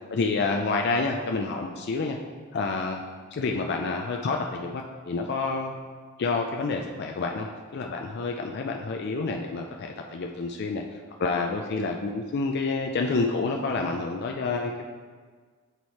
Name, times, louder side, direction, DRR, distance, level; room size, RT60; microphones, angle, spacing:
voice 1, 0.1-2.2 2.5-3.0 3.3-5.7 6.2-7.5 7.7-10.8 11.2-14.9, left 3 dB, 50° left, 2 dB, 0.4 m, -28 dB
8.1 x 3.1 x 4.1 m, 1.5 s
head